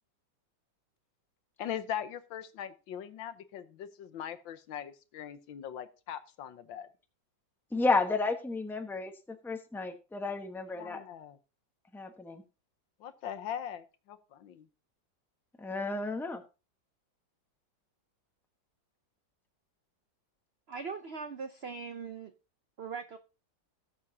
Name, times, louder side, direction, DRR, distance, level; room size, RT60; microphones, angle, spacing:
voice 1, 1.6-6.9 10.7-11.4 13.0-14.7, left 9 dB, 85° left, 9 dB, 1.7 m, -40 dB
voice 2, 7.7-11.0 11.9-12.4 15.6-16.4, left 3 dB, ahead, 5 dB, 0.7 m, -32 dB
voice 3, 20.7-22.3 22.8-23.2, right 5 dB, 90° right, 8 dB, 0.5 m, -40 dB
18.0 x 7.3 x 2.8 m, 0.31 s
omnidirectional pair, 2.0 m